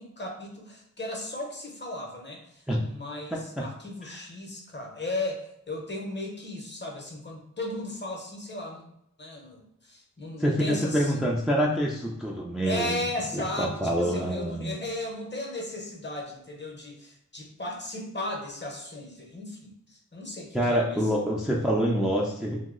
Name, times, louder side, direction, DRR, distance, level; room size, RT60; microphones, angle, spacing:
voice 1, 0.0-11.2 12.6-21.1, left 1 dB, 35° left, 0 dB, 0.7 m, -36 dB
voice 2, 10.4-12.9 13.3-14.7 20.5-22.6, equal, ahead, -2 dB, 0.4 m, -26 dB
2.7 x 2.0 x 3.7 m, 0.74 s
wide cardioid pair, 60°, 32 cm